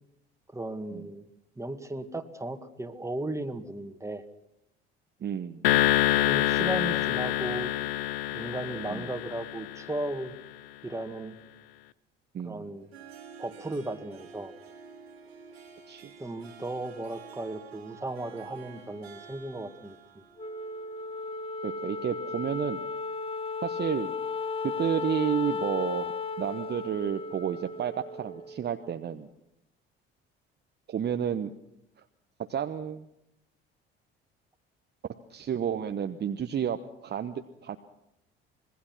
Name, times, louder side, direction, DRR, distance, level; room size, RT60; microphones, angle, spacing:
voice 1, 0.5-1.3 1.6-4.2 6.1-7.7 8.3-10.4 10.8-11.4 12.4-12.9 13.4-14.5 16.2-20.2, right 2 dB, 10° right, 7 dB, 2.0 m, -36 dB
voice 2, 5.2-5.6 8.9-9.1 12.3-12.7 15.9-16.1 21.6-22.8 23.6-24.1 24.6-26.1 26.4-29.3 30.9-31.5 32.5-33.1 35.3-37.8, right 8 dB, 35° right, 7 dB, 1.1 m, -31 dB
sound 1, 5.6-10.1, left 14 dB, 70° left, 0.8 m, -26 dB
Harp, 12.8-21.5, right 7 dB, 80° right, 2.6 m, -50 dB
Wind instrument woodwind instrument, 20.4-29.0, left 4 dB, 20° left, 1.1 m, -35 dB
25.5 x 21.0 x 6.1 m, 0.84 s
figure-of-eight pair, 55°, 31 cm